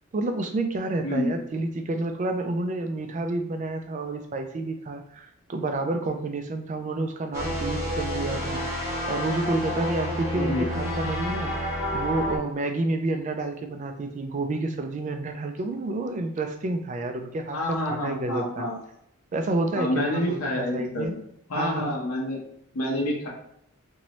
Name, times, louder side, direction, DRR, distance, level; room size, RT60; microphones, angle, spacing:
voice 1, 0.1-8.8 9.1-18.7 19.3-21.1 21.5-22.0, right 2 dB, 35° right, 6 dB, 0.3 m, -29 dB
sound 1, 7.3-12.4, equal, 10° right, 0.8 m, -29 dB
voice 2, 17.5-18.8 19.8-21.1 21.5-22.4 22.7-23.3, left 1 dB, 85° left, -2 dB, 0.9 m, -28 dB
3.0 x 2.6 x 2.9 m, 0.75 s
head